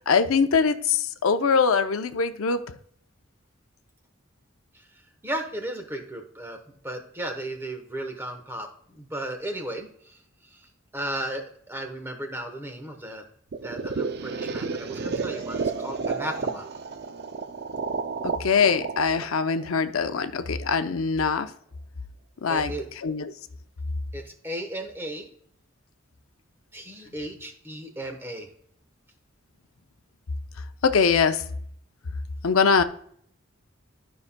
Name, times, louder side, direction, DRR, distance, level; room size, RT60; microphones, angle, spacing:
voice 1, 0.0-2.6 18.2-21.5 22.4-22.7 23.0-23.3 30.8-31.4 32.4-32.8, left 5 dB, 85° left, 9 dB, 0.6 m, -22 dB
voice 2, 5.2-6.6 6.8-13.2 13.6-16.7 22.5-22.9 24.1-25.3 26.7-28.5, right 1 dB, 10° right, 4 dB, 1.0 m, -35 dB
sound 1, 13.5-20.4, right 4 dB, 50° right, 0.4 m, -31 dB
12.0 x 5.6 x 2.2 m, 0.65 s
head